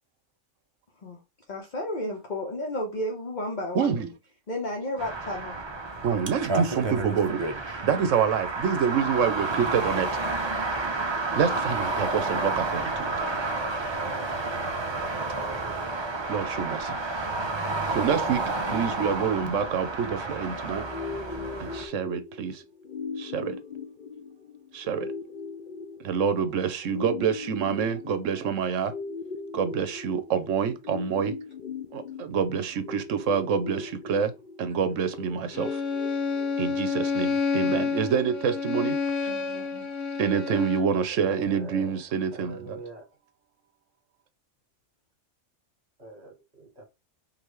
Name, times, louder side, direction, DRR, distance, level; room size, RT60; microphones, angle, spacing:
voice 1, 1.5-4.1 4.5-5.6 6.7-6.9 18.8-19.2 39.3-39.9, left 1 dB, 40° left, 1.0 m, -33 dB
voice 2, 3.7-4.1 6.0-7.4 7.8-10.1 11.3-13.1 16.3-17.0 17.9-18.4 18.7-20.9 21.6-22.6 23.2-23.6 24.7-25.1 26.0-28.9 29.5-31.3 31.9-34.3 34.6-35.8 36.6-39.0 40.2-42.8, right 7 dB, 75° right, 1.1 m, -27 dB
sound 1, 5.0-21.9, right 3 dB, 30° right, 0.5 m, -30 dB
voice 3, 15.6-16.0 41.1-42.0 42.3-43.0 46.0-46.8, right 2 dB, 55° right, 1.9 m, -44 dB
sound 2, 20.8-36.8, left 5 dB, 55° left, 0.6 m, -40 dB
Bowed string instrument, 35.5-41.0, left 5 dB, 75° left, 1.1 m, -29 dB
5.2 x 2.6 x 3.1 m
omnidirectional pair, 1.3 m